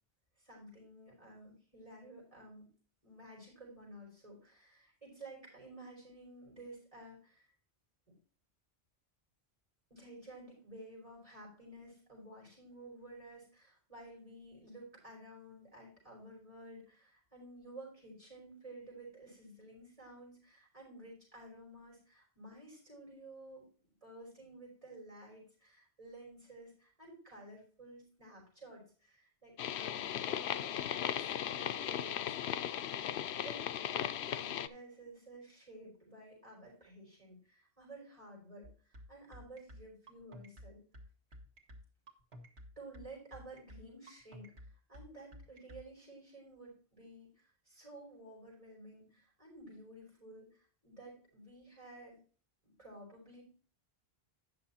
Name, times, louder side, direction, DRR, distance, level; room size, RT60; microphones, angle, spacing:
voice 1, 0.4-2.7 3.0-7.5 9.9-23.6 24.0-33.1 33.4-40.8 42.8-52.2 52.6-53.4, right 1 dB, 35° right, -3 dB, 5.4 m, -53 dB
sound 1, 29.6-34.7, left 10 dB, 90° left, 0.8 m, -37 dB
sound 2, 38.6-45.8, equal, 85° right, 1.7 m, -52 dB
9.7 x 6.5 x 4.2 m, 0.40 s
omnidirectional pair, 1.0 m